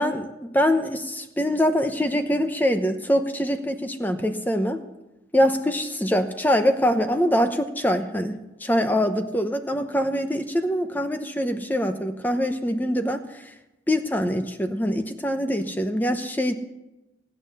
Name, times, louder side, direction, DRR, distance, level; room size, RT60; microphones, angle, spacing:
voice 1, 0.0-4.8 5.3-13.5 13.9-16.5, equal, 10° left, 7 dB, 0.8 m, -24 dB
18.0 x 9.2 x 6.8 m, 0.99 s
head